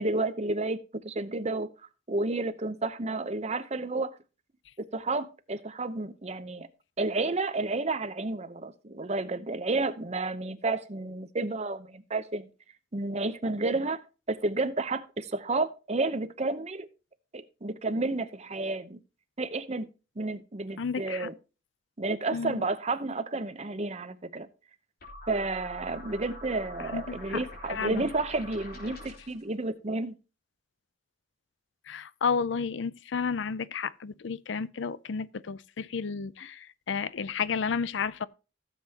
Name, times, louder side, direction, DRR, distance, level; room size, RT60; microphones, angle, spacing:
voice 1, 0.0-1.7 2.1-4.1 4.9-6.7 7.0-12.5 12.9-14.0 14.3-16.9 17.3-19.0 19.4-19.9 20.2-21.3 22.0-24.5 25.3-30.2, right 2 dB, 35° right, 0.8 m, -31 dB
voice 2, 20.8-21.3 22.3-22.6 26.9-27.4 27.7-28.1 31.9-38.3, left 5 dB, 80° left, 0.5 m, -32 dB
sound 1, 25.0-29.4, left 1 dB, 55° left, 3.8 m, -44 dB
16.0 x 7.8 x 2.9 m
head